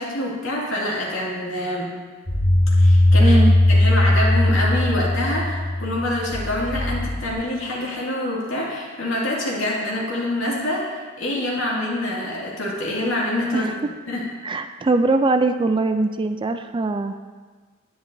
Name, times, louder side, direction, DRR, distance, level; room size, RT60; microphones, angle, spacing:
voice 1, 0.0-1.9 2.8-3.4 3.7-13.7 14.1-14.2, left 1 dB, 75° left, -5 dB, 2.3 m, -26 dB
sound 1, 2.3-7.3, left 1 dB, 55° left, 2.1 m, -18 dB
voice 2, 3.2-3.5 11.4-11.5 13.5-13.7 14.4-17.1, right 3 dB, 25° right, 8 dB, 0.4 m, -21 dB
10.0 x 9.8 x 2.7 m, 1.4 s
head